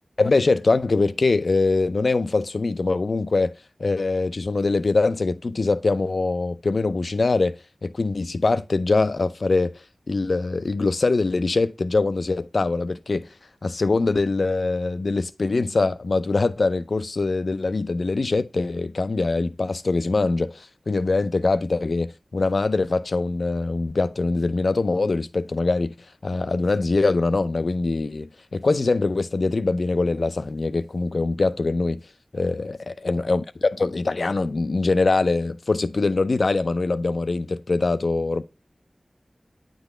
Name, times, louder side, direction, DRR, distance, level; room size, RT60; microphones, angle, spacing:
voice 1, 0.2-3.5 3.8-7.6 7.8-9.7 10.1-13.3 13.6-25.9 26.2-32.0 32.3-38.4, left 3 dB, 75° left, 0.5 m, -23 dB
9.0 x 4.0 x 3.3 m
wide cardioid pair, 55°, 0 cm